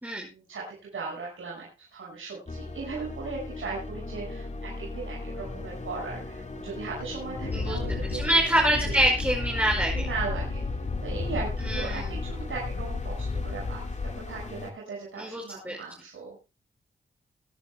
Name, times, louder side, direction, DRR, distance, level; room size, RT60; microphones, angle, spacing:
voice 1, 0.2-8.3 8.8-9.0 9.9-16.4, right 4 dB, 75° right, -4 dB, 6.0 m, -38 dB
sound 1, 2.5-14.7, left 2 dB, 35° left, 2.6 m, -38 dB
Wind, 7.4-14.5, left 4 dB, 50° left, 2.6 m, -33 dB
voice 2, 8.1-10.1 11.6-12.1 15.2-15.8, right 1 dB, 10° right, -2 dB, 5.6 m, -25 dB
23.5 x 11.0 x 2.3 m, 0.29 s
cardioid pair, 55°, 21 cm